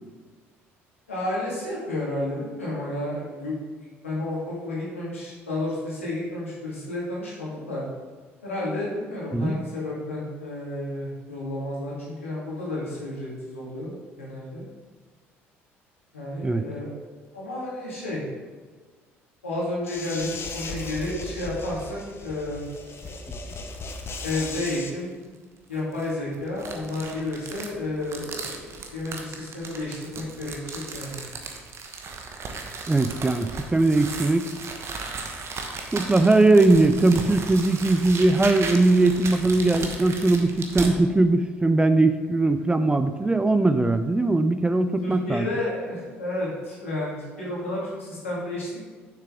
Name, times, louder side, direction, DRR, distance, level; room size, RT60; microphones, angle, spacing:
voice 1, 1.1-7.8 8.4-14.7 16.1-16.9 17.3-18.2 19.4-22.6 24.2-25.1 25.7-31.2 45.0-48.8, left 1 dB, 85° left, -6 dB, 2.1 m, -31 dB
sound 1, 19.9-24.9, left 3 dB, 35° left, 0.9 m, -37 dB
sound 2, 22.6-23.2 23.6-23.7 24.3-24.9 25.7-40.9, right 4 dB, 40° right, 1.0 m, -36 dB
voice 2, 32.9-34.5 35.9-45.5, right 2 dB, 15° right, 10 dB, 0.4 m, -20 dB
6.6 x 6.5 x 3.7 m, 1.5 s
figure-of-eight pair, 55°, 7 cm